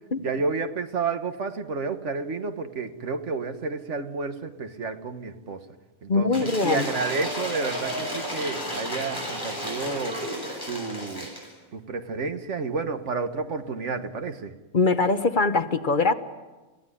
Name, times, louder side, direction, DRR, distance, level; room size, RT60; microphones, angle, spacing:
voice 1, 0.2-5.6 6.0-10.2 10.7-11.3 11.7-14.5, right 4 dB, 75° right, 9 dB, 1.6 m, -30 dB
voice 2, 6.1-6.9 14.7-16.1, left 3 dB, 45° left, 10 dB, 1.1 m, -22 dB
Cheering / Applause / Crowd, 6.3-11.5, equal, 15° left, 7.5 m, -33 dB
29.0 x 16.0 x 10.0 m, 1.2 s
omnidirectional pair, 1.3 m